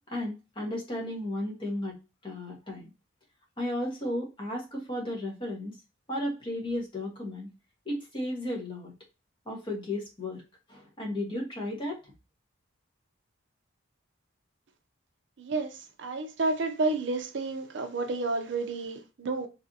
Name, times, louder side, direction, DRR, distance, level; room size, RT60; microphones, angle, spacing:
voice 1, 0.1-2.0 2.2-2.9 3.6-5.8 6.1-7.5 7.8-8.9 9.5-10.4 10.7-12.1, left 1 dB, 25° left, 1.0 m, -34 dB
voice 2, 15.4-19.5, right 3 dB, 60° right, 0.5 m, -31 dB
3.2 x 2.5 x 2.6 m
head